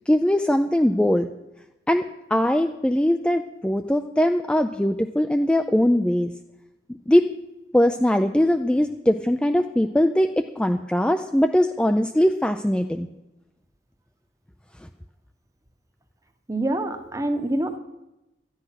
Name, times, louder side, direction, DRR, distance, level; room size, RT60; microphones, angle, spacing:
voice 1, 0.1-1.3 1.9-6.3 6.9-7.3 7.7-13.1, left 1 dB, 5° left, 6 dB, 0.3 m, -21 dB
voice 2, 16.5-17.8, right 1 dB, 20° right, 8 dB, 0.9 m, -26 dB
13.0 x 9.9 x 5.8 m, 0.95 s
head